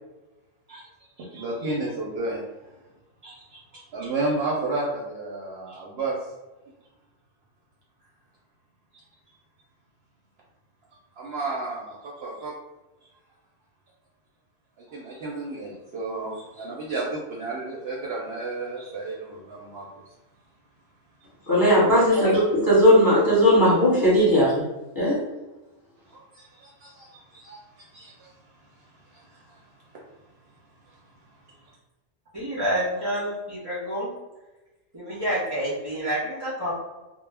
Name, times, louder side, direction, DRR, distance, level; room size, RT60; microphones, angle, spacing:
voice 1, 1.2-2.4 3.2-3.6 3.9-6.1 11.2-12.5 14.9-19.8 22.1-22.2 26.1-27.1 27.3-28.3 29.1-29.5, right 2 dB, 65° right, -3 dB, 0.7 m, -32 dB
voice 2, 21.5-24.5 24.9-25.2, equal, 20° left, -8 dB, 0.8 m, -18 dB
voice 3, 32.3-34.1 34.9-36.8, equal, 40° right, -8 dB, 0.3 m, -28 dB
2.2 x 2.0 x 3.2 m, 1.1 s
omnidirectional pair, 1.3 m